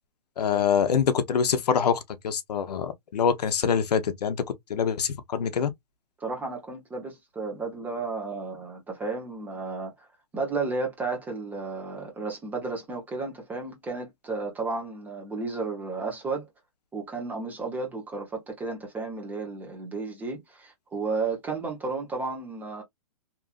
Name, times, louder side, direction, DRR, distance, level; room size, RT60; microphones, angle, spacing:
voice 1, 0.4-5.7, left 7 dB, 85° left, 0.7 m, -25 dB
voice 2, 6.2-10.1 10.3-16.5 16.9-22.8, right 3 dB, 10° right, 0.8 m, -33 dB
2.9 x 2.5 x 2.3 m
hypercardioid pair, 160°, 20 cm